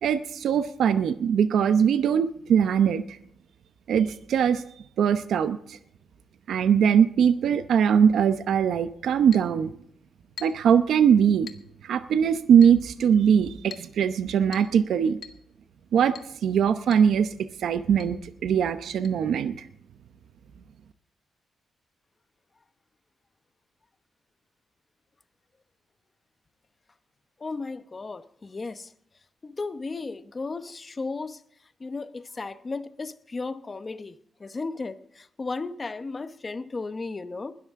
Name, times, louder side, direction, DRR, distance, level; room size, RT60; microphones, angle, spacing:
voice 1, 0.0-3.2 3.9-4.6 5.0-5.8 6.5-9.7 10.4-11.5 11.8-15.2 15.9-16.1 16.4-19.7, right 8 dB, 75° right, 0.8 m, -21 dB
Chink clink, 9.3-9.5 10.4-10.7 11.5-11.7 12.6-12.8 13.7-13.9 14.5-14.8 15.2-15.4 16.2-16.4 16.9-17.1 17.4-17.5 18.0-18.2 19.0-19.1, left 7 dB, 65° left, 1.5 m, -43 dB
voice 2, 27.4-28.9 29.4-31.4 31.8-37.5, left 3 dB, 25° left, 0.9 m, -35 dB
20.5 x 12.5 x 3.7 m
cardioid pair, 140°, 0 cm